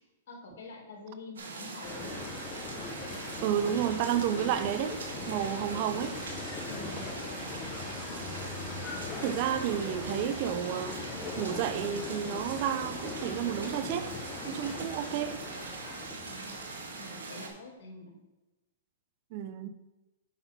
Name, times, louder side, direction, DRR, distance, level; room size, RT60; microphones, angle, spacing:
voice 1, 0.3-2.3 6.6-7.6 16.2-16.6 17.0-18.2, left 2 dB, 65° left, 2.8 m, -46 dB
sound 1, 1.4-17.5, right 3 dB, 85° right, 1.8 m, -42 dB
sound 2, 1.8-17.2, left 3 dB, 20° left, 1.3 m, -40 dB
voice 2, 3.4-5.0 5.3-6.1 9.2-11.0 11.4-14.1 14.5-15.4 19.3-19.7, right 10 dB, 45° right, 0.7 m, -31 dB
8.2 x 5.6 x 4.4 m
hypercardioid pair, 135°, 0 cm